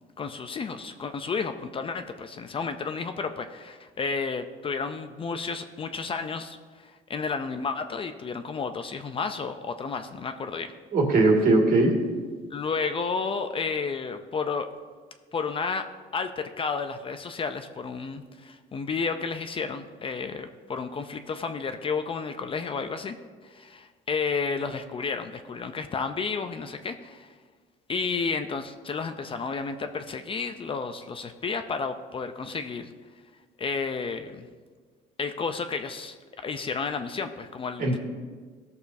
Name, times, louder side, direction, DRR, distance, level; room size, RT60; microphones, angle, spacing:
voice 1, 0.2-10.7 12.5-14.7 15.3-15.8 16.1-23.1 23.4-27.3 27.9-32.9 33.6-34.5 35.2-36.2 36.4-38.0, left 5 dB, 30° left, 8 dB, 0.5 m, -32 dB
voice 2, 10.9-11.9 37.8-38.0, right 2 dB, 55° right, 0 dB, 2.0 m, -20 dB
15.0 x 6.7 x 2.7 m, 1.5 s
cardioid pair, 110°, 17 cm